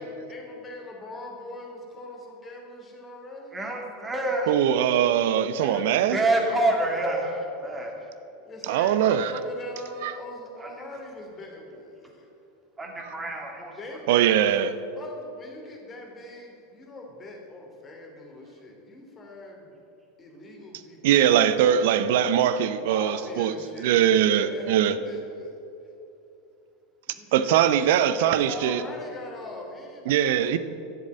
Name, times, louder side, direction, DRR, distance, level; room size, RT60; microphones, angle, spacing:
voice 1, 0.0-3.6 5.5-6.1 8.4-12.3 13.7-14.3 14.9-19.8 20.2-22.2 22.7-25.5 27.1-30.6, left 2 dB, 25° left, 0 dB, 3.1 m, -41 dB
voice 2, 3.5-4.5 6.1-8.1 8.7-8.8 10.6-10.7 12.8-13.8 14.2-14.4, right 2 dB, 15° right, 0 dB, 2.7 m, -27 dB
voice 3, 4.5-6.2 8.7-9.3 10.0-10.1 14.1-14.7 21.0-23.5 23.8-25.0 27.3-28.8 30.1-30.6, right 10 dB, 60° right, 13 dB, 0.6 m, -21 dB
12.0 x 7.3 x 7.9 m, 2.8 s
figure-of-eight pair, 85°, 0 cm